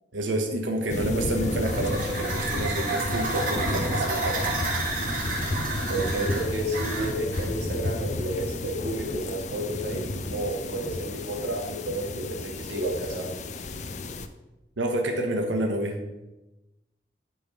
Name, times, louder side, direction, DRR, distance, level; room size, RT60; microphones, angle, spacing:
voice 1, 0.1-4.4 14.8-16.0, right 1 dB, 90° right, 2 dB, 1.1 m, -28 dB
sound 1, 0.9-14.3, left 2 dB, 40° left, 0.5 m, -32 dB
sound 2, 1.3-7.5, right 3 dB, 45° right, 1.9 m, -31 dB
voice 2, 5.9-13.3, right 1 dB, 65° right, -1 dB, 2.0 m, -31 dB
10.5 x 3.8 x 5.6 m, 1.0 s
head